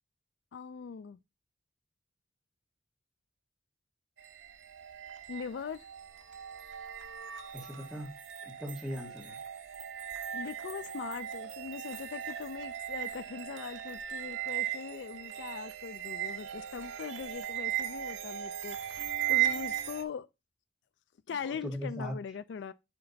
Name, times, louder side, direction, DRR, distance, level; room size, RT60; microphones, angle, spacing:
voice 1, 0.5-1.2 5.3-5.9 10.3-20.3 21.3-22.7, left 6 dB, 65° left, 0.3 m, -41 dB
sound 1, 4.2-20.0, right 11 dB, 85° right, 1.1 m, -37 dB
voice 2, 7.5-8.1 8.4-9.4 21.4-22.1, equal, ahead, 1.6 m, -39 dB
9.5 x 3.3 x 3.9 m
head